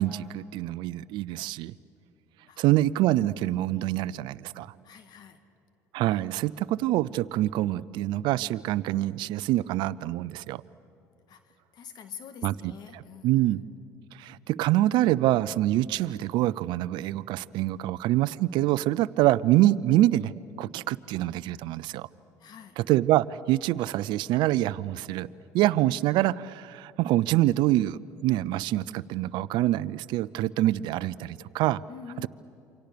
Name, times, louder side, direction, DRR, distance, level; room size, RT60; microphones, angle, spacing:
voice 1, 0.0-1.7 2.6-4.7 5.9-10.6 12.4-13.6 14.2-20.3 20.6-22.1 22.8-25.3 25.5-31.8, right 15 dB, 65° right, 18 dB, 0.6 m, -25 dB
voice 2, 4.8-5.4 11.3-13.6 22.4-22.8 31.9-32.3, left 7 dB, 55° left, 9 dB, 1.8 m, -46 dB
28.0 x 25.5 x 6.8 m, 2.9 s
hypercardioid pair, 70°, 9 cm